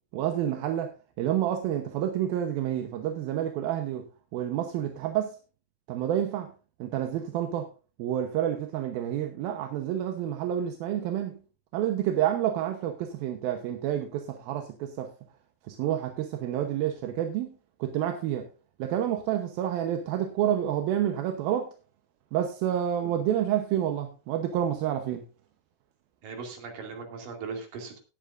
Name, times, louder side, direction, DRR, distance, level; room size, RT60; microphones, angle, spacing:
voice 1, 0.1-0.9 1.2-4.1 4.3-5.4 5.9-6.5 6.8-7.7 8.0-11.4 11.7-15.1 15.7-17.5 17.8-18.5 18.8-21.7 22.3-25.2, right 10 dB, 70° right, 2.5 m, -29 dB
voice 2, 26.2-28.0, right 4 dB, 55° right, 3.8 m, -38 dB
19.0 x 9.0 x 2.5 m
omnidirectional pair, 4.9 m